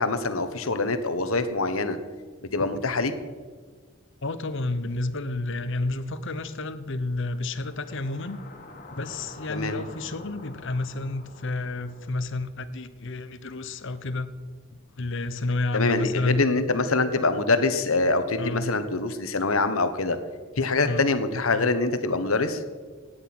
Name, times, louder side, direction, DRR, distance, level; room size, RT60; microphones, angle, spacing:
voice 1, 0.0-2.0 2.5-3.1 9.5-9.8 15.7-20.2 20.6-22.6, left 3 dB, 90° left, 10 dB, 1.3 m, -24 dB
voice 2, 4.2-8.4 8.9-14.3 15.0-16.4 18.4-18.7 20.8-21.1, left 2 dB, 65° left, 12 dB, 1.0 m, -30 dB
sound 1, 7.6-12.1, left 2 dB, 40° left, 2.1 m, -47 dB
17.0 x 9.5 x 6.1 m, 1.5 s
head